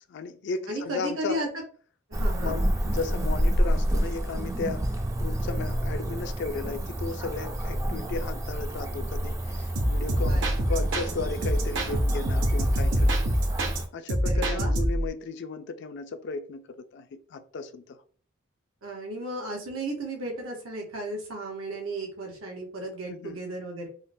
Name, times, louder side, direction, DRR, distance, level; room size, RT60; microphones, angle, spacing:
voice 1, 0.0-1.4 2.4-4.8 5.2-10.4 10.7-13.2 13.9-18.0 23.1-23.4, left 4 dB, 60° left, 0.4 m, -35 dB
voice 2, 0.7-1.5 2.1-2.6 10.3-10.5 10.7-10.9 14.2-14.8 18.8-23.9, right 1 dB, 90° right, 0.9 m, -34 dB
Cricket / Motor vehicle (road), 2.1-13.9, right 1 dB, 15° right, 0.3 m, -29 dB
sound 1, 9.8-11.1 11.4-13.8 14.1-15.1, equal, 65° right, 0.6 m, -25 dB
3.6 x 2.1 x 2.5 m
head